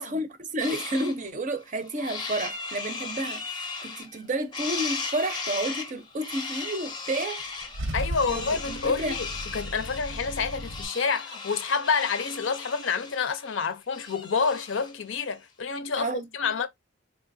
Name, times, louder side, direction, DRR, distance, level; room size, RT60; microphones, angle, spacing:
voice 1, 0.0-7.4 8.2-9.2 16.0-16.3, right 1 dB, 40° right, 0.5 m, -31 dB
sound 1, 0.6-1.2 1.6-4.2 4.5-15.0, left 4 dB, 20° left, 0.6 m, -37 dB
Car / Engine starting / Idling, 7.4-10.8, right 1 dB, 85° right, 0.7 m, -36 dB
voice 2, 7.9-9.3 9.5-16.7, left 5 dB, 70° left, 0.5 m, -28 dB
4.0 x 2.8 x 2.5 m
head